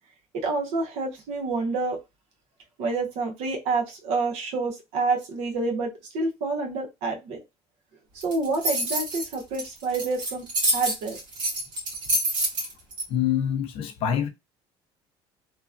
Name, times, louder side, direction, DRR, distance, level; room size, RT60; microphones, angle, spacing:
voice 1, 0.3-2.0 2.8-7.4 8.2-10.5 10.7-11.2, right 3 dB, 75° right, 1.1 m, -28 dB
sound 1, 8.2-13.0, right 1 dB, 45° right, 1.4 m, -27 dB
voice 2, 13.1-14.3, left 9 dB, 55° left, 0.6 m, -25 dB
3.0 x 2.2 x 2.5 m
cardioid pair, 145°, 11 cm